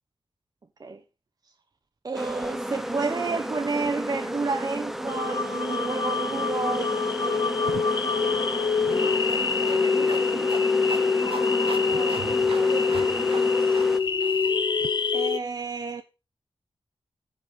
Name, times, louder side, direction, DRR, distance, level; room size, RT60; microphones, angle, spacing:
voice 1, 2.0-7.5 15.1-16.0, right 4 dB, 45° right, 1.0 m, -30 dB
sound 1, 2.1-14.0, equal, 5° right, 1.1 m, -33 dB
sound 2, 5.1-15.4, left 5 dB, 55° left, 0.9 m, -25 dB
sound 3, 7.7-14.9, right 6 dB, 85° right, 0.8 m, -42 dB
voice 2, 8.9-10.5 11.2-13.3, right 5 dB, 70° right, 2.1 m, -41 dB
15.0 x 5.6 x 6.5 m
wide cardioid pair, 115°, 9 cm